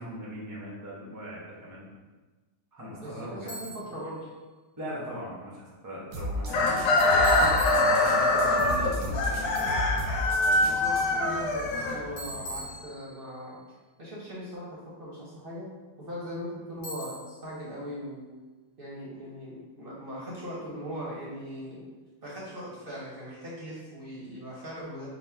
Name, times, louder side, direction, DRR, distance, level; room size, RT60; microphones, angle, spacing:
voice 1, 0.0-1.8 2.7-3.5 4.8-9.8, equal, 25° right, -5 dB, 0.4 m, -40 dB
voice 2, 3.0-4.3 6.5-6.9 8.6-8.7 10.6-13.6 14.0-15.7 16.0-18.3 18.8-21.8 22.2-25.1, equal, 45° right, -6 dB, 0.8 m, -40 dB
Bicycle, 3.5-4.0 7.2-8.5 12.2-13.4 16.8-17.5, equal, 60° left, 1.5 m, -41 dB
sound 1, 6.1-11.0, left 1 dB, 70° right, 1.1 m, -34 dB
Chicken rooster, 6.5-12.5, left 2 dB, 85° left, 1.3 m, -24 dB
4.1 x 2.2 x 4.3 m, 1.3 s
omnidirectional pair, 1.9 m